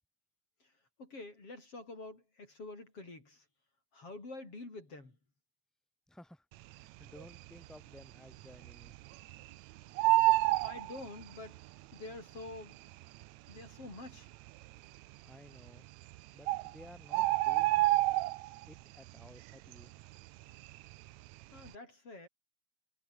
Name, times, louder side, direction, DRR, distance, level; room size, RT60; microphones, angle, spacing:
voice 1, 1.0-3.4 3.9-5.2 10.6-11.6 11.9-12.8 13.5-14.3 21.5-22.3, left 2 dB, 50° left, 7.7 m, -47 dB
voice 2, 6.1-6.4 6.7-9.0 15.2-15.9 16.3-17.9 18.7-19.9, left 1 dB, ahead, 6.5 m, -55 dB
Bird, 7.1-7.7 8.0-8.1 8.3-9.5 9.8-11.6 12.5-12.6 13.2-13.3 13.5-13.6 14.3-14.7 15.7-15.8 16.1-16.2 16.5-18.8 19.1-19.4 19.7-21.1 21.4-21.7, right 18 dB, 80° right, 1.8 m, -28 dB
omnidirectional pair, 3.4 m